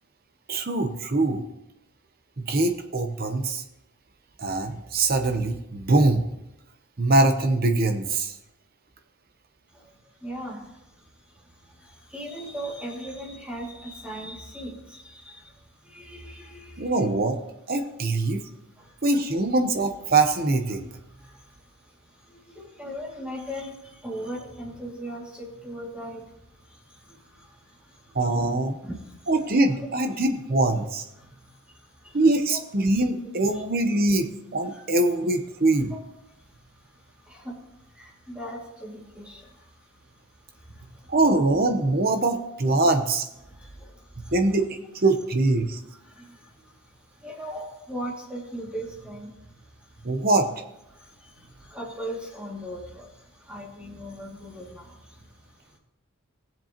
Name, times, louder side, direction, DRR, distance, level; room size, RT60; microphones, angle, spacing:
voice 1, 0.5-1.4 2.4-3.6 4.4-6.2 7.0-8.3 16.8-17.4 17.7-18.4 19.0-20.9 28.1-28.8 29.3-31.0 32.1-34.3 34.5-35.9 41.1-43.3 44.3-44.7 45.0-45.8 50.0-50.5, right 2 dB, 45° right, 6 dB, 0.9 m, -23 dB
voice 2, 9.7-17.1 17.7-17.9 18.2-19.0 20.9-28.3 28.8-29.3 31.1-32.2 32.5-32.6 33.5-33.6 34.6-34.8 35.9-36.0 36.3-41.2 43.4-44.3 45.7-50.3 50.9-55.8, equal, 5° right, -4 dB, 2.3 m, -40 dB
17.5 x 7.5 x 3.0 m, 0.89 s
head